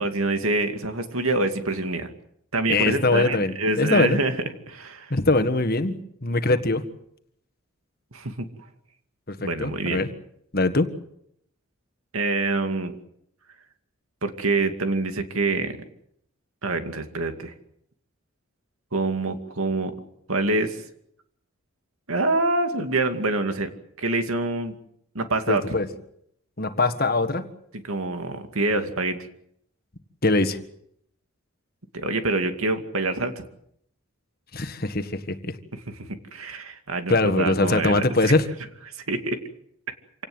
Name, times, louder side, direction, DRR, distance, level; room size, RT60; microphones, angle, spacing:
voice 1, 0.0-2.1 2.5-4.3 4.7-5.1 8.1-8.5 9.4-10.0 12.1-13.0 14.2-15.8 16.6-17.5 18.9-19.9 20.3-20.8 22.1-23.7 24.0-24.8 25.1-25.6 27.9-29.2 31.9-33.4 35.9-38.4 38.9-39.4, right 2 dB, 80° right, 7 dB, 2.5 m, -26 dB
voice 2, 2.7-4.2 5.1-6.8 9.3-10.1 10.5-10.9 25.5-25.9 26.6-27.5 30.2-30.6 34.5-35.6 37.1-38.4, left 2 dB, 45° left, 10 dB, 1.6 m, -22 dB
27.0 x 18.0 x 8.0 m, 0.72 s
head